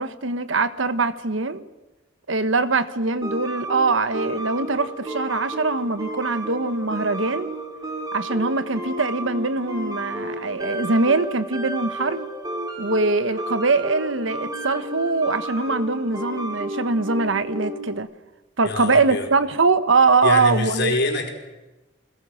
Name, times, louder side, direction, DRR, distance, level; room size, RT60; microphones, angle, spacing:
voice 1, 0.0-1.6 2.3-7.5 8.1-12.3 12.8-18.1 18.6-20.9, right 3 dB, 70° right, 13 dB, 1.2 m, -22 dB
sound 1, 3.2-18.0, right 1 dB, 20° right, 3.6 m, -32 dB
voice 2, 18.6-19.3 20.2-21.3, left 2 dB, 60° left, 3 dB, 4.3 m, -25 dB
30.0 x 20.5 x 6.4 m, 1.1 s
head